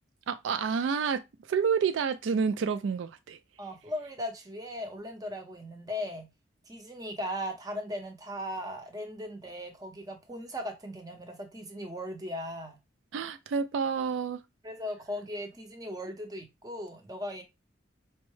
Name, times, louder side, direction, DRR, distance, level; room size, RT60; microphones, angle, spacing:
voice 1, 0.3-1.2 1.5-3.4 13.1-14.4, right 6 dB, 85° right, 0.3 m, -29 dB
voice 2, 3.6-6.3 6.7-12.8 14.6-17.4, left 1 dB, 20° right, 0.7 m, -38 dB
4.4 x 2.0 x 3.1 m
head